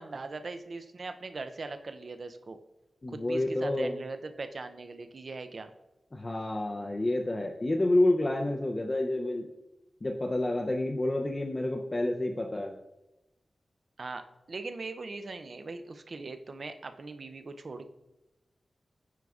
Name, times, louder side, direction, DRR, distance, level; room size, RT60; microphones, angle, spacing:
voice 1, 0.0-2.6 3.1-5.7 14.0-17.9, right 3 dB, 55° right, 8 dB, 0.4 m, -40 dB
voice 2, 3.0-4.0 6.1-9.5 10.0-12.7, left 1 dB, 30° left, 1 dB, 0.4 m, -29 dB
9.1 x 4.7 x 2.3 m, 0.97 s
wide cardioid pair, 120°, 0 cm